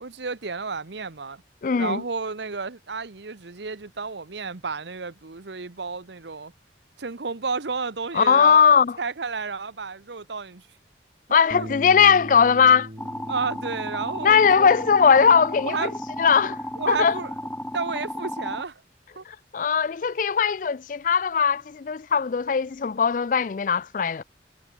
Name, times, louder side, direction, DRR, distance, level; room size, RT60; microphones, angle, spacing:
voice 1, 0.0-1.4 1.8-6.5 7.0-8.6 9.0-10.7 11.5-11.7 13.3-14.8 15.6-16.0 16.8-17.3 17.7-18.8 19.2-19.3, right 4 dB, 75° right, 1.1 m, -32 dB
voice 2, 1.6-2.0 8.1-9.0 11.3-12.9 14.2-15.9 16.2-16.6 16.9-17.2 19.3-24.2, left 6 dB, 45° left, 0.4 m, -19 dB
sound 1, 11.5-17.8, equal, 40° right, 6.5 m, -42 dB
sound 2, 13.0-18.6, left 1 dB, 5° left, 1.9 m, -34 dB
head